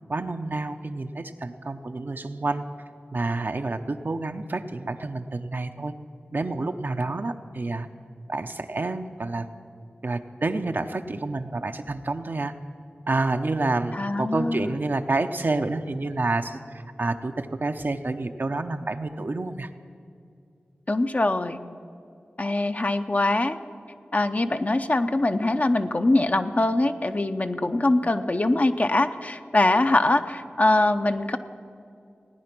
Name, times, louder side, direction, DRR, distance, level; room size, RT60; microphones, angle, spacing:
voice 1, 0.1-2.6 3.1-5.9 6.3-7.9 8.3-9.5 10.0-12.5 13.1-19.7, right 2 dB, 55° right, 7 dB, 0.7 m, -28 dB
voice 2, 13.9-14.8 20.9-21.6 22.4-23.6 24.1-31.4, left 2 dB, 40° left, 8 dB, 0.7 m, -23 dB
17.5 x 9.5 x 6.0 m, 2.4 s
cardioid pair, 40°, 4 cm